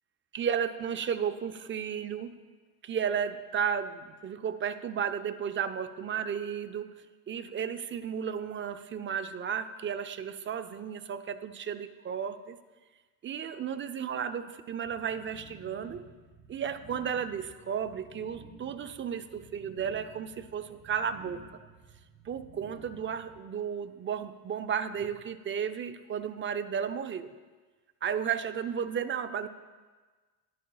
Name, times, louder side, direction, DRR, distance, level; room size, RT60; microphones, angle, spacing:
voice 1, 0.3-2.3 2.8-6.9 7.3-12.6 13.2-16.1 16.5-21.6 22.3-27.3 28.0-29.5, right 7 dB, 30° right, 10 dB, 0.5 m, -33 dB
sound 1, 14.8-23.4, right 4 dB, 50° right, 1.0 m, -53 dB
12.5 x 11.0 x 2.3 m, 1.3 s
cardioid pair, 100°, 40 cm